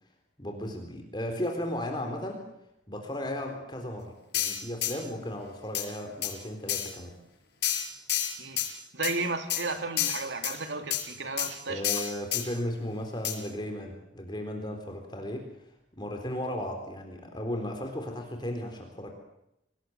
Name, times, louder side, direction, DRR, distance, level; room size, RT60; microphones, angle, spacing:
voice 1, 0.4-2.4 2.9-7.1 11.7-15.5 15.9-19.1, left 1 dB, 25° left, 3 dB, 3.9 m, -35 dB
sound 1, 4.3-4.9 5.7-5.9 6.2-6.3 6.7-6.9 7.6-8.7 9.0-9.1 9.5-9.6 10.0-10.5 10.9-11.0 11.4-11.5 11.8-12.4 13.2-13.4, left 11 dB, 65° left, 5.8 m, -29 dB
voice 2, 8.9-12.0, right 3 dB, 80° right, 7 dB, 2.8 m, -34 dB
26.0 x 19.5 x 8.1 m, 0.83 s
head